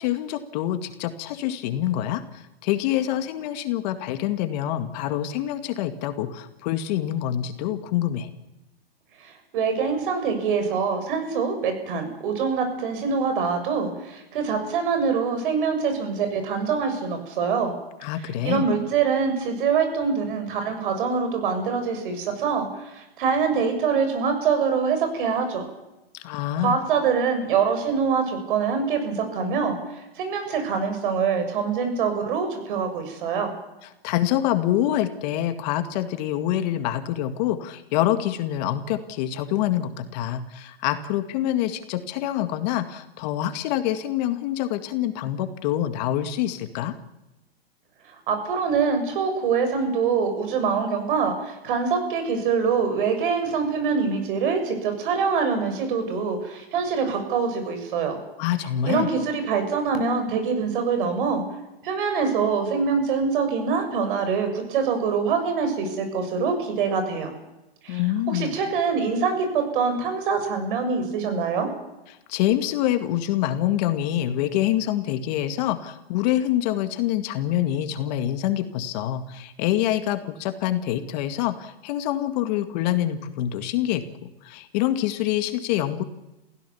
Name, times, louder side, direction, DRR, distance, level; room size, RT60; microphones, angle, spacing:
voice 1, 0.0-8.3 18.0-18.7 26.1-26.8 34.0-46.9 58.4-59.1 67.9-68.6 72.3-84.0 84.4-86.0, left 12 dB, 45° left, 9 dB, 2.0 m, -26 dB
voice 2, 9.2-17.7 18.4-25.6 26.6-33.5 48.3-58.2 58.8-61.4 61.8-67.3 67.8-68.0 68.3-71.7, right 5 dB, 60° right, 6 dB, 6.7 m, -24 dB
27.5 x 16.0 x 7.1 m, 0.96 s
hypercardioid pair, 135°, 30 cm